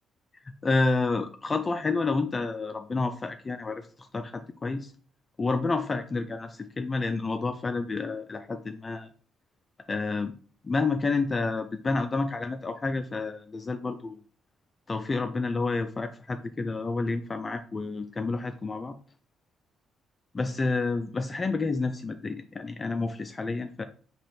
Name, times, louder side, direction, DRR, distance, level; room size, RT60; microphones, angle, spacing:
voice 1, 0.6-3.9 4.1-4.9 5.4-9.1 9.9-10.3 10.6-14.2 14.9-18.9 20.3-23.8, left 3 dB, 30° left, 8 dB, 0.3 m, -29 dB
4.1 x 2.9 x 3.1 m, 0.41 s
cardioid pair, 90°, 0 cm